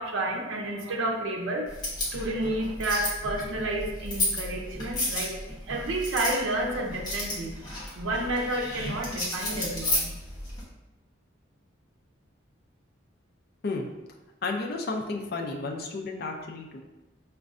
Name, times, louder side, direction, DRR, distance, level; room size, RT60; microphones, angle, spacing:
voice 1, 0.0-1.8 2.1-5.4 5.6-7.5 7.9-10.1, right 1 dB, 90° right, 0 dB, 0.5 m, -30 dB
sound 1, 1.7-10.6, left 1 dB, 20° left, 0.8 m, -33 dB
voice 2, 14.4-16.8, left 3 dB, 50° left, 1 dB, 0.4 m, -32 dB
5.0 x 2.2 x 2.4 m, 1.0 s
head